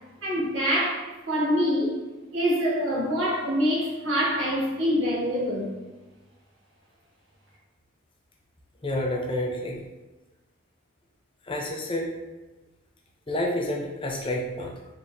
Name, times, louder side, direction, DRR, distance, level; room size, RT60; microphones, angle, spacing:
voice 1, 0.2-2.0 2.3-5.7, equal, 65° right, -6 dB, 1.3 m, -25 dB
voice 2, 8.8-9.9 11.5-12.1 13.3-14.8, left 1 dB, 25° left, 0 dB, 0.6 m, -29 dB
4.4 x 3.3 x 2.6 m, 1.1 s
head